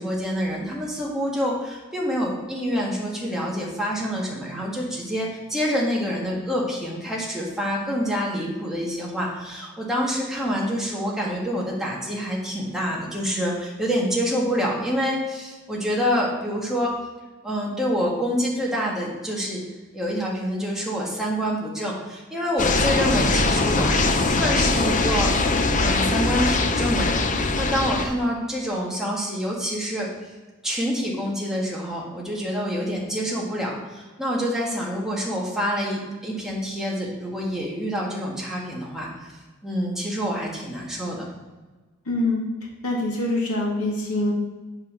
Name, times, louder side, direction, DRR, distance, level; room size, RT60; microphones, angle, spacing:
voice 1, 0.0-16.9 17.4-19.6 19.9-25.3 25.8-30.1 30.6-39.3 39.6-41.2, equal, ahead, -4 dB, 1.9 m, -27 dB
sound 1, 22.6-28.1, left 3 dB, 35° left, 0.7 m, -21 dB
voice 2, 42.1-42.4 42.8-44.3, left 2 dB, 75° left, -3 dB, 2.6 m, -24 dB
8.2 x 4.9 x 6.2 m, 1.3 s
head